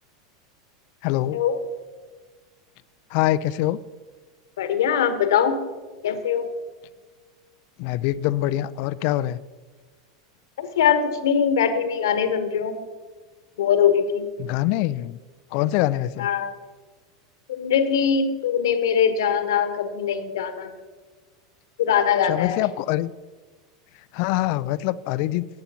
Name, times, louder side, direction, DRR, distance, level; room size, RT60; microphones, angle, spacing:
voice 1, 1.0-1.4 3.1-3.8 7.8-9.4 14.4-15.2 15.5-16.3 22.3-23.1 24.1-25.5, left 15 dB, 50° left, 17 dB, 0.4 m, -24 dB
voice 2, 4.6-5.6 6.0-6.5 10.6-12.8 13.6-14.3 16.2-16.5 17.5-20.7 21.8-22.6, left 7 dB, 65° left, 9 dB, 1.1 m, -22 dB
19.0 x 8.8 x 2.9 m, 1.4 s
figure-of-eight pair, 85°, 2 cm